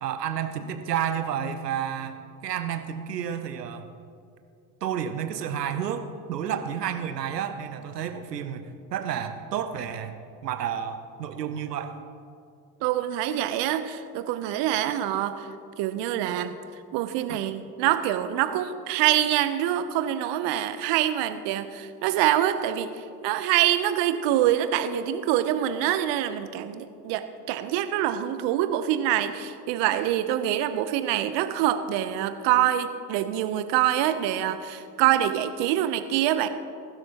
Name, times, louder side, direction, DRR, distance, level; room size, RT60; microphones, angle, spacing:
voice 1, 0.0-3.9 4.8-10.1 10.4-11.9 17.3-17.4, right 8 dB, 90° right, 9 dB, 0.9 m, -31 dB
voice 2, 12.8-15.5 15.8-16.5 16.9-22.9 23.2-36.5, right 12 dB, 60° right, 11 dB, 1.0 m, -25 dB
21.5 x 12.5 x 3.0 m, 2.5 s
hypercardioid pair, 65°, 47 cm